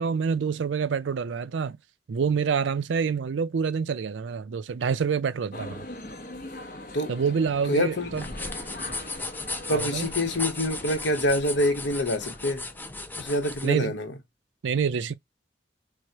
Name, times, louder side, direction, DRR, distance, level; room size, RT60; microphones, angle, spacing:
voice 1, 0.0-1.8 2.1-5.8 7.1-8.3 9.7-10.1 13.6-14.0 14.6-15.1, right 6 dB, 80° right, 0.4 m, -27 dB
sound 1, 5.5-12.9, left 1 dB, 50° left, 0.8 m, -42 dB
voice 2, 7.7-8.1 9.7-12.6 13.2-14.1, left 1 dB, 70° left, 0.9 m, -26 dB
sound 2, 8.1-13.7, left 3 dB, 10° left, 0.4 m, -36 dB
4.6 x 2.1 x 2.7 m
head